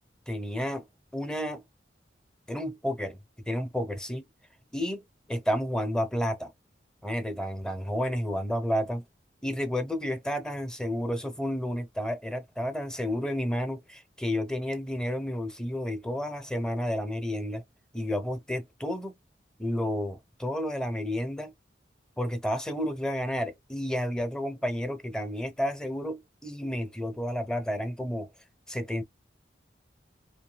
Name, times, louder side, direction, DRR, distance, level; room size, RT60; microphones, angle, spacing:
voice 1, 0.3-0.9 1.1-1.6 2.5-3.2 3.5-4.3 4.7-6.5 7.0-9.0 9.4-17.6 17.9-19.1 19.6-21.5 22.2-28.3 28.7-29.0, equal, 5° left, 0.8 m, -31 dB
5.2 x 2.7 x 2.3 m
head